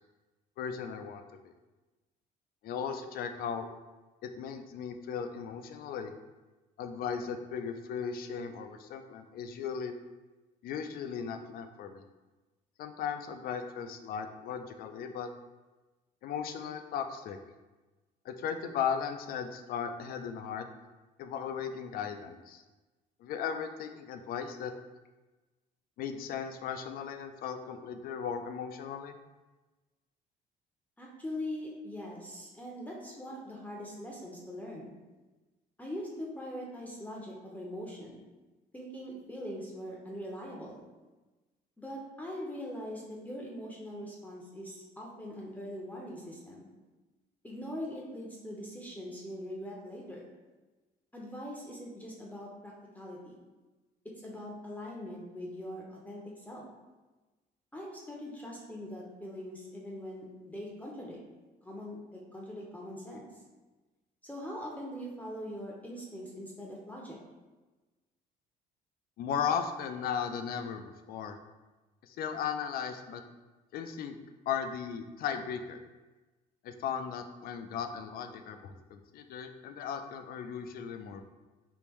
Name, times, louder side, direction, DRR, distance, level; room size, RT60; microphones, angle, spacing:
voice 1, 0.6-1.5 2.6-3.7 4.2-6.1 6.8-9.9 10.6-12.0 12.8-15.3 16.2-17.4 18.3-20.7 21.2-22.6 23.2-24.7 26.0-29.2 69.2-71.4 72.0-73.2 73.7-74.2 74.5-75.8 76.6-81.3, left 7 dB, 60° left, 7 dB, 0.4 m, -36 dB
voice 2, 31.0-34.9 35.8-38.2 38.7-40.8 41.8-46.7 47.4-50.3 51.1-53.4 54.2-56.7 57.7-61.2 61.6-63.3 64.2-67.2, equal, 10° left, -3 dB, 0.6 m, -42 dB
3.5 x 2.6 x 3.0 m, 1.2 s
cardioid pair, 110°, 17 cm